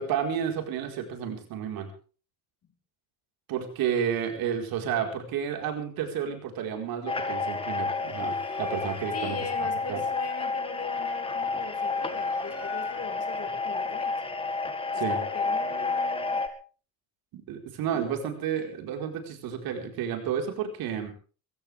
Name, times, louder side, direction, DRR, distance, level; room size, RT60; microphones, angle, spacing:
voice 1, 0.0-1.9 3.5-10.0 14.9-15.2 17.3-21.1, right 8 dB, 90° right, 4 dB, 4.6 m, -31 dB
sound 1, 7.1-16.5, left 4 dB, 15° left, 2.1 m, -30 dB
sound 2, 7.8-9.4 11.3-13.3, left 2 dB, 5° right, 6.2 m, -47 dB
voice 2, 9.1-14.1 14.9-16.4 17.9-18.1, left 5 dB, 45° left, 5 dB, 4.3 m, -40 dB
22.0 x 16.5 x 3.5 m, 0.38 s
cardioid pair, 135°, 35 cm